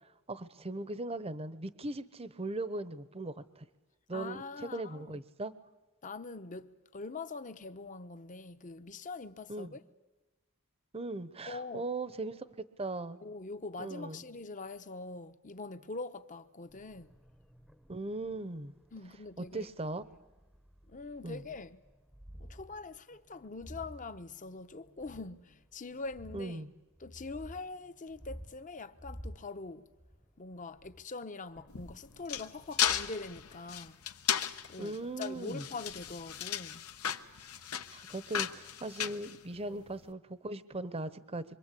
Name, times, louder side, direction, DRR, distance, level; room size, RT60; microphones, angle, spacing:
voice 1, 0.3-3.6 4.1-5.5 9.5-9.7 10.9-12.4 12.8-13.2 13.8-14.2 17.9-18.8 19.4-20.0 21.2-21.4 26.3-26.7 34.8-35.6 37.9-41.4, right 2 dB, 25° right, 0.8 m, -39 dB
voice 2, 4.1-5.2 6.0-9.8 11.5-11.9 13.2-17.1 18.9-19.7 20.9-21.8 22.4-26.7 27.0-29.9 30.4-34.0 34.7-36.8 39.7-39.8, left 3 dB, 35° left, 0.9 m, -43 dB
sound 1, 16.7-33.5, equal, ahead, 0.8 m, -53 dB
sound 2, 31.7-39.9, left 10 dB, 85° left, 1.1 m, -35 dB
26.0 x 25.0 x 8.4 m
head